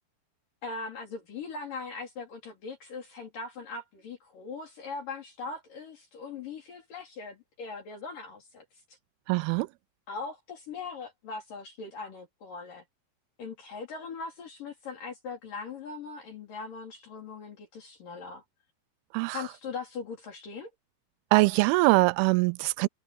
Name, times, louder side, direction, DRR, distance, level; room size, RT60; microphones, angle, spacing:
voice 1, 0.6-8.6 10.1-12.8 13.4-18.4 19.3-20.7, left 4 dB, 60° left, 5.5 m, -40 dB
voice 2, 9.3-9.7 19.1-19.4 21.3-22.9, right 23 dB, 85° right, 2.5 m, -23 dB
omnidirectional pair, 4.4 m